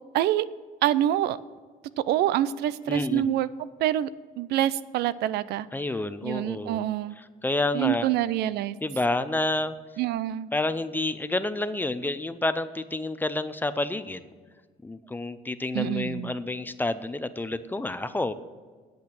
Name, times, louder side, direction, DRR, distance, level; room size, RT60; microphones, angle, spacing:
voice 1, 0.1-0.5 0.8-1.4 2.0-3.5 3.8-4.1 4.4-5.7 6.2-7.1 7.7-8.8 10.0-10.5 15.7-16.3, right 12 dB, 75° right, 17 dB, 0.4 m, -26 dB
voice 2, 2.9-3.2 5.7-6.9 7.2-8.1 8.8-9.7 10.5-14.3 14.8-18.3, left 2 dB, 10° left, 12 dB, 0.5 m, -29 dB
8.6 x 8.4 x 6.3 m, 1.5 s
cardioid pair, 110°, 17 cm